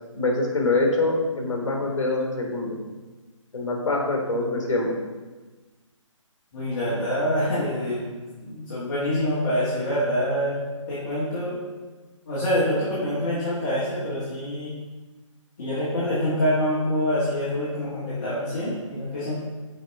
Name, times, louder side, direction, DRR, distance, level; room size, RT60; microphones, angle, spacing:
voice 1, 0.1-2.7 3.5-4.9, left 2 dB, 65° left, 0 dB, 1.6 m, -24 dB
voice 2, 6.5-8.1 8.4-10.6 10.9-11.6 12.3-14.7 15.6-19.3, equal, 35° left, -10 dB, 1.6 m, -26 dB
6.4 x 4.4 x 3.4 m, 1.3 s
hypercardioid pair, 155°, 17 cm